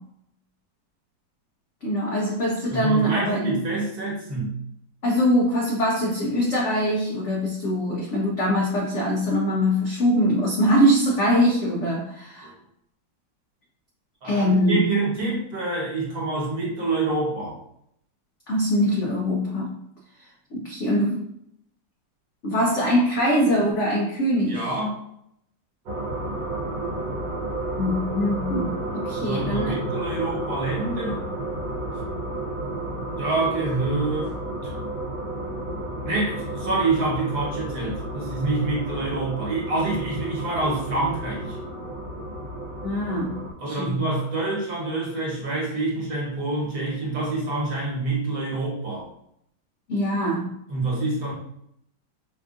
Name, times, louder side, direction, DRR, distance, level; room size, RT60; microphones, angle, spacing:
voice 1, 1.8-3.6 5.0-12.5 14.2-14.8 18.5-19.7 20.5-21.3 22.4-24.7 27.8-29.8 42.8-43.3 43.7-44.0 49.9-50.5, equal, 70° left, -2 dB, 0.7 m, -23 dB
voice 2, 2.7-4.6 12.4-12.5 14.2-17.6 24.4-25.0 29.1-31.2 33.2-34.3 34.6-34.8 36.0-41.6 43.6-49.1 50.7-51.3, right 2 dB, 60° right, -4 dB, 1.6 m, -27 dB
sound 1, 25.9-43.5, right 1 dB, 75° right, 1.4 m, -32 dB
5.1 x 2.4 x 2.4 m, 0.74 s
omnidirectional pair, 2.0 m